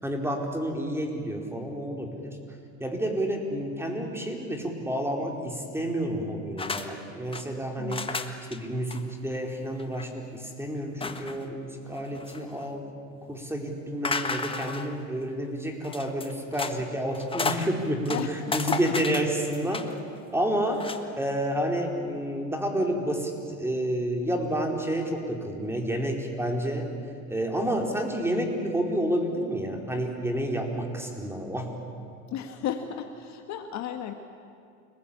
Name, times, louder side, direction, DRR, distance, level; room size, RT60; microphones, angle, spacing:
voice 1, 0.0-2.4 2.8-8.1 8.5-12.9 13.3-18.2 18.5-19.9 20.3-20.8 21.1-26.9 27.3-31.7, right 1 dB, 5° right, 2 dB, 4.3 m, -29 dB
sound 1, 6.6-6.9 7.1-7.4 7.9-8.6 8.9-9.0 9.3-9.4 9.8-10.1 11.0-11.5 11.9-12.7 14.0-14.9 15.8-16.8 17.1-17.7 18.0-20.0 20.7-21.0, left 4 dB, 15° left, 1.5 m, -33 dB
voice 2, 7.8-8.1 18.1-18.3 18.7-18.8 32.3-34.1, left 9 dB, 40° left, 6 dB, 1.8 m, -34 dB
29.0 x 20.5 x 8.7 m, 2.3 s
hypercardioid pair, 105°, 41 cm